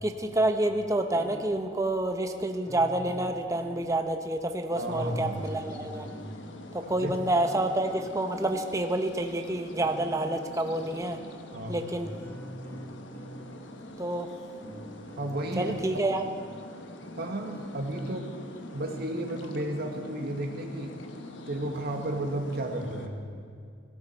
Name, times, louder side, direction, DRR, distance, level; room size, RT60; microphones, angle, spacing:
voice 1, 0.0-6.1 6.7-11.2 11.7-12.1 14.0-14.3 15.6-16.2, right 1 dB, 15° right, 5 dB, 0.9 m, -28 dB
sound 1, 1.1-16.2 16.6-16.7 17.0-19.2, equal, 10° left, 1.5 m, -47 dB
sound 2, 4.7-23.1, left 1 dB, 70° left, 1.2 m, -45 dB
voice 2, 4.8-5.4 7.0-7.1 11.5-11.8 15.2-15.7 17.2-18.3 18.7-20.9 21.5-23.2, right 1 dB, 55° right, 3 dB, 1.8 m, -33 dB
18.0 x 17.0 x 4.5 m, 2.2 s
head